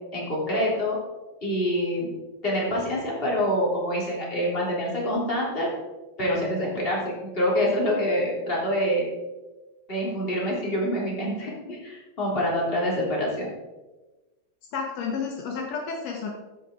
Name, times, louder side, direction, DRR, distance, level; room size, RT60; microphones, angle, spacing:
voice 1, 0.1-1.0 1.4-2.1 2.4-5.7 6.2-9.1 9.9-13.5, equal, 15° left, -4 dB, 3.0 m, -26 dB
voice 2, 14.7-16.3, left 5 dB, 80° left, 1 dB, 1.4 m, -31 dB
14.5 x 7.6 x 3.8 m, 1.1 s
omnidirectional pair, 4.6 m